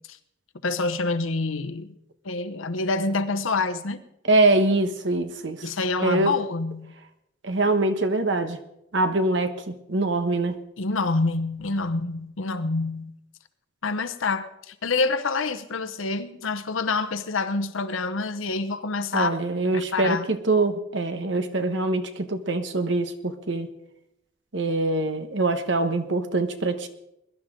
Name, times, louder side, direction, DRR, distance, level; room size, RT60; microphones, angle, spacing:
voice 1, 0.6-1.9 2.2-4.0 5.6-6.9 10.8-13.1 13.8-19.3 19.9-20.3, left 3 dB, 90° left, 10 dB, 0.9 m, -27 dB
voice 2, 4.2-5.7 6.0-6.3 7.4-8.6 8.9-10.5 19.1-23.7 24.5-26.9, right 2 dB, 65° right, 8 dB, 1.2 m, -24 dB
21.5 x 11.5 x 3.8 m, 0.81 s
head